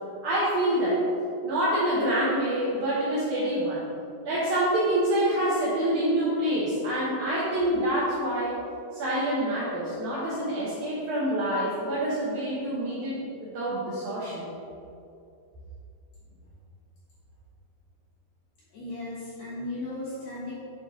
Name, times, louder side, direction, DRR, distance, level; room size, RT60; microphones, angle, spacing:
voice 1, 0.2-1.0 1.4-3.8 4.2-8.5 8.9-14.5, right 1 dB, 80° right, -9 dB, 1.7 m, -26 dB
voice 2, 18.7-20.5, left 2 dB, 65° left, -9 dB, 1.9 m, -36 dB
9.0 x 3.3 x 3.7 m, 2.6 s
omnidirectional pair, 4.8 m